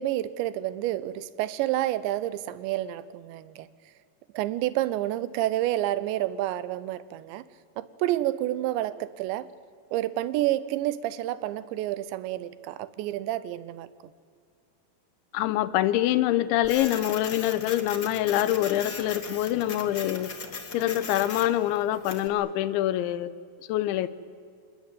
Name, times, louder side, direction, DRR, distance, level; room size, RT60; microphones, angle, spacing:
voice 1, 0.0-3.7 4.3-7.4 7.8-9.5 9.9-13.9, right 14 dB, 85° right, 16 dB, 3.1 m, -29 dB
voice 2, 15.3-20.3 20.7-23.3 23.7-24.1, left 13 dB, 90° left, 15 dB, 3.3 m, -25 dB
Printer, 16.6-22.3, left 4 dB, 70° left, 0.9 m, -38 dB
27.5 x 19.5 x 9.1 m, 2.2 s
omnidirectional pair, 5.1 m